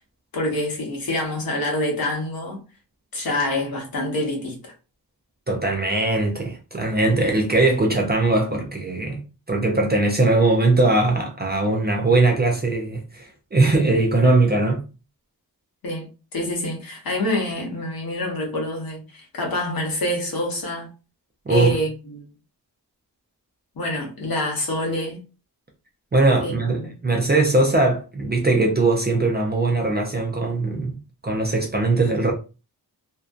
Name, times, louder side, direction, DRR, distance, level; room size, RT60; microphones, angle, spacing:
voice 1, 0.3-2.6 3.1-4.7 15.8-20.9 21.5-22.2 23.8-25.2 26.4-26.9, left 1 dB, 60° left, 0.9 m, -26 dB
voice 2, 5.5-9.2 9.5-14.8 21.5-21.7 26.1-31.0 31.2-32.3, right 2 dB, 25° right, 0.4 m, -20 dB
2.6 x 2.1 x 2.3 m
wide cardioid pair, 180°, 39 cm